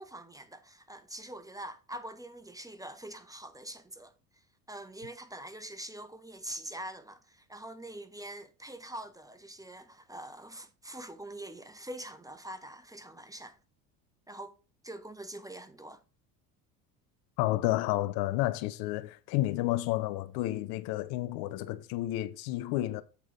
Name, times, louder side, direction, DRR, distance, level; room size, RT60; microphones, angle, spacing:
voice 1, 0.0-4.1 4.7-13.6 14.3-14.6 14.8-16.0, right 1 dB, 5° right, 0.9 m, -44 dB
voice 2, 17.4-23.0, left 16 dB, 55° left, 0.8 m, -31 dB
8.3 x 4.6 x 4.2 m
hypercardioid pair, 75°, 47 cm